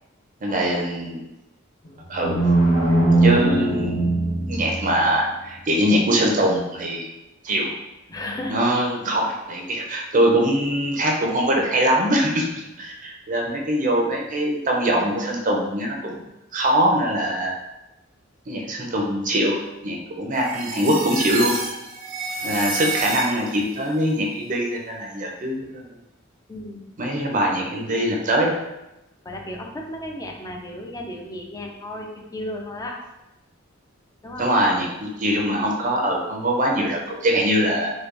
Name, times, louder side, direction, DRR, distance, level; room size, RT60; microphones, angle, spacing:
voice 1, 0.4-1.2 2.1-2.4 3.2-4.1 4.5-7.1 7.4-7.7 8.5-12.5 12.8-16.2 16.5-17.5 18.5-21.6 22.4-25.9 27.0-28.6 34.4-37.9, equal, 40° right, 0 dB, 0.5 m, -22 dB
sound 1, 1.9-5.1, right 2 dB, 80° left, 0.9 m, -20 dB
voice 2, 8.1-8.6 22.4-22.6 26.5-26.8 29.3-33.0 34.2-34.5, left 1 dB, 15° left, 1 dB, 0.4 m, -34 dB
sound 2, 20.3-23.7, right 3 dB, 90° right, 0.7 m, -29 dB
4.5 x 2.2 x 2.5 m, 0.95 s
head